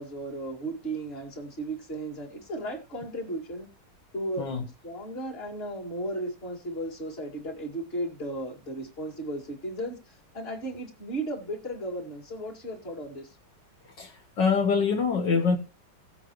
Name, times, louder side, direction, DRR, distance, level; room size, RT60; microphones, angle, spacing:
voice 1, 0.0-3.7 4.1-4.5 4.8-13.4, right 1 dB, 30° left, 2.8 m, -35 dB
voice 2, 14.0-15.6, left 5 dB, 65° left, 2.1 m, -25 dB
17.0 x 7.8 x 3.1 m
omnidirectional pair, 2.1 m